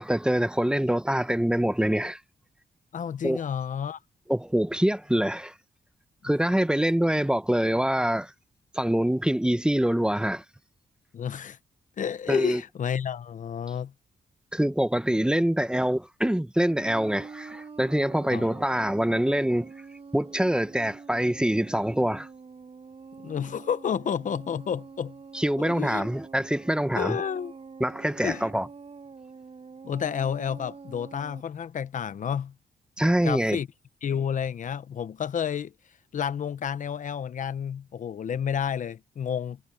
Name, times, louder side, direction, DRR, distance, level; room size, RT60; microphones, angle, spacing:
voice 1, 0.0-2.2 3.2-3.4 4.3-5.5 6.2-8.3 8.7-10.4 12.3-12.6 14.5-19.7 20.1-22.3 25.3-27.2 27.8-28.7 33.0-33.6, right 1 dB, 5° right, 0.9 m, -25 dB
voice 2, 2.9-4.0 11.1-11.6 12.0-13.9 18.3-18.5 23.2-25.2 25.6-26.1 26.9-27.5 28.2-28.5 29.8-32.5 33.2-33.7 34.0-35.7 36.1-39.6, left 8 dB, 60° left, 0.8 m, -30 dB
sound 1, 16.7-31.4, right 5 dB, 40° right, 7.9 m, -46 dB
wide cardioid pair, 115°, 15 cm